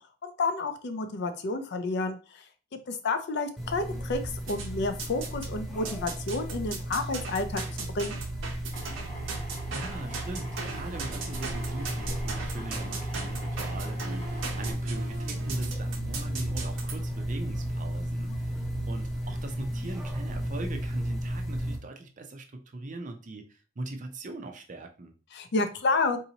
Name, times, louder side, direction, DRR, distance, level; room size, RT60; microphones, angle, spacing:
voice 1, 0.2-2.4 2.9-7.6 7.9-8.2 18.3-18.4 25.3-26.2, left 3 dB, 55° left, 8 dB, 0.5 m, -30 dB
sound 1, 3.6-21.8, right 1 dB, ahead, 0.6 m, -34 dB
sound 2, 4.5-5.5 5.9-16.9, right 4 dB, 75° right, 0.8 m, -39 dB
Drill, 8.7-14.7, equal, 30° left, 1.1 m, -45 dB
voice 2, 9.7-25.1, right 2 dB, 40° right, 5 dB, 0.5 m, -40 dB
4.0 x 2.7 x 2.8 m, 0.35 s
head